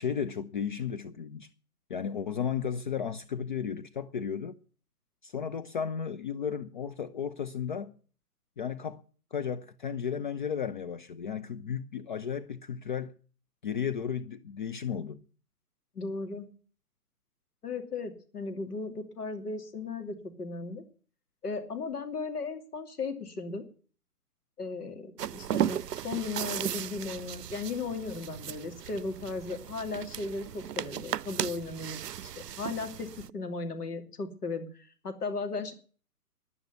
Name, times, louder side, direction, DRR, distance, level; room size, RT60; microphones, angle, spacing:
voice 1, 0.0-1.5 1.9-4.6 5.2-7.9 8.6-9.0 9.3-13.2 13.6-15.2, left 7 dB, 35° left, 0.6 m, -34 dB
voice 2, 15.9-16.5 17.6-20.8 21.4-23.6 24.6-32.0 32.4-35.7, left 3 dB, 75° left, 2.9 m, -36 dB
sound 1, 25.2-33.3, right 11 dB, 85° right, 0.6 m, -36 dB
11.0 x 9.1 x 9.2 m
figure-of-eight pair, 135°, 46 cm